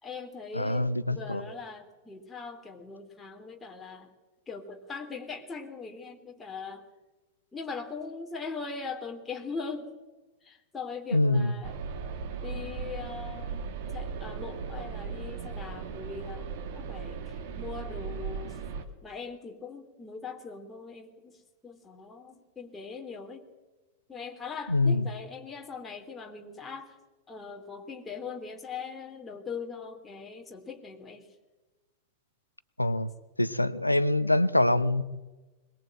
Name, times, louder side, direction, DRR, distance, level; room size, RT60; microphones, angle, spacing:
voice 1, 0.0-4.1 4.5-6.8 7.5-9.9 10.4-11.7 12.4-13.6 13.9-18.6 19.0-23.5 24.1-27.0 27.3-31.3, left 5 dB, 15° left, 3.2 m, -41 dB
voice 2, 0.5-1.4 11.1-11.5 24.7-25.0 32.8-33.1 33.4-35.0, left 1 dB, 85° left, 0.9 m, -24 dB
sound 1, 11.6-18.8, right 5 dB, 50° right, 2.4 m, -37 dB
22.0 x 20.5 x 7.8 m
figure-of-eight pair, 90°, 0 cm